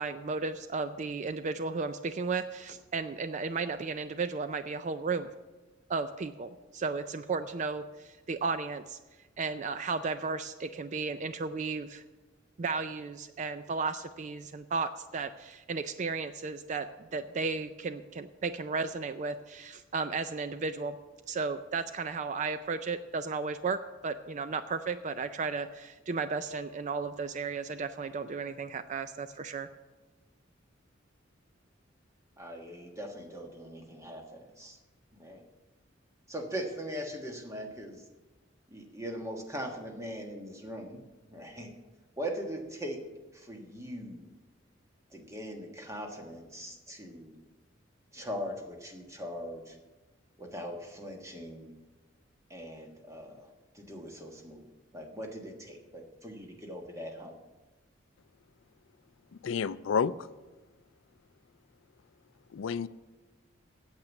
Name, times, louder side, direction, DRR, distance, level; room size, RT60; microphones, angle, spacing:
voice 1, 0.0-5.3 5.9-9.0 9.4-12.0 12.6-21.0 21.3-29.7, right 4 dB, 40° right, 11 dB, 0.4 m, -34 dB
voice 2, 32.4-34.8 35.1-35.4 36.3-38.0 38.7-41.0 41.3-41.7 42.2-43.0 43.3-44.3 45.1-47.4 48.1-49.8 50.4-51.7 52.5-53.5 53.7-54.6 54.9-57.3, equal, 15° right, 2 dB, 1.4 m, -40 dB
voice 3, 59.4-60.1 62.5-62.9, left 6 dB, 80° left, 17 dB, 0.4 m, -29 dB
8.8 x 7.7 x 8.2 m, 1.2 s
head